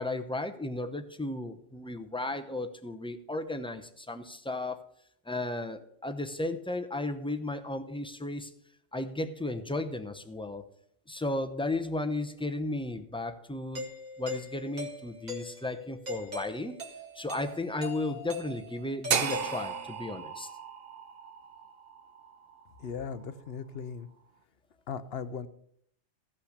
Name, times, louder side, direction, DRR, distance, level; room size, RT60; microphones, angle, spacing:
voice 1, 0.0-4.8 5.3-8.5 8.9-10.6 11.1-13.9 14.2-16.8 17.2-20.5, left 2 dB, 5° left, 8 dB, 0.5 m, -34 dB
Doorbell, 13.7-20.1, left 1 dB, 35° right, 1.6 m, -42 dB
sound 1, 19.1-23.2, right 7 dB, 55° right, 0.9 m, -34 dB
voice 2, 22.8-24.1 24.9-25.5, left 6 dB, 60° left, 13 dB, 0.8 m, -38 dB
15.0 x 5.8 x 6.5 m, 0.68 s
omnidirectional pair, 1.3 m